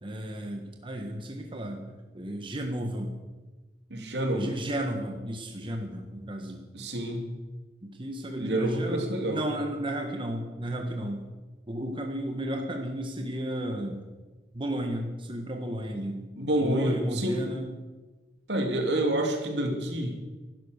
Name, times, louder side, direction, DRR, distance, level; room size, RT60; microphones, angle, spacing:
voice 1, 0.0-3.1 4.3-6.6 7.8-11.2 11.7-14.0 14.5-16.2 16.6-17.7, right 1 dB, 30° right, 3 dB, 1.5 m, -33 dB
voice 2, 3.9-4.5 6.7-7.2 8.4-9.4 16.4-17.5 18.5-20.2, right 1 dB, 75° right, 3 dB, 2.8 m, -28 dB
15.0 x 12.0 x 6.6 m, 1.2 s
head